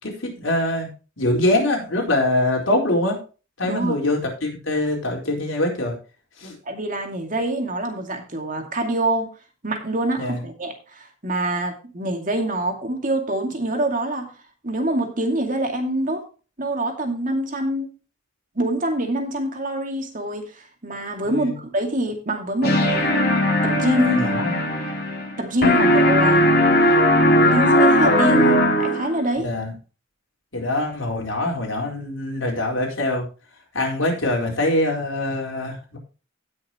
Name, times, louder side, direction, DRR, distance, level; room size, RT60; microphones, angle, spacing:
voice 1, 0.0-0.9 1.2-3.2 3.6-6.0 6.4-6.5 10.2-10.4 21.2-21.6 24.1-24.7 29.4-29.7 30.5-33.3 33.7-36.0, left 1 dB, 70° left, 0 dB, 4.4 m, -23 dB
voice 2, 3.6-4.0 6.7-9.3 9.6-14.3 14.6-16.2 16.6-17.9 18.6-23.2 23.6-24.2 25.4-26.5 27.5-28.5 28.8-29.5, right 1 dB, 40° right, 3 dB, 2.4 m, -25 dB
sound 1, 22.6-25.4 25.6-29.2, left 1 dB, 50° left, 3.4 m, -18 dB
17.5 x 6.3 x 3.0 m, 0.34 s
head